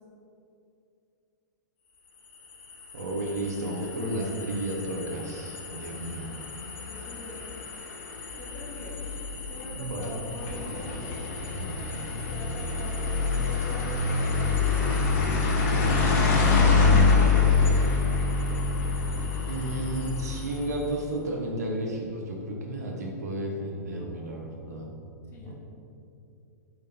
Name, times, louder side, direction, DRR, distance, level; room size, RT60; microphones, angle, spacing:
sound 1, 2.3-20.8, left 4 dB, 45° left, 1.1 m, -26 dB
voice 1, 2.9-6.3 9.8-10.2 11.5-11.8 17.5-17.7 19.5-24.9 25.4-25.6, right 1 dB, 60° right, 0 dB, 1.2 m, -33 dB
voice 2, 5.6-6.0 6.8-7.4 8.4-9.1 9.4-11.1 12.1-15.4 25.3-25.6, left 2 dB, 25° left, -2 dB, 1.2 m, -44 dB
8.4 x 3.8 x 4.2 m, 2.7 s
figure-of-eight pair, 105°, 10 cm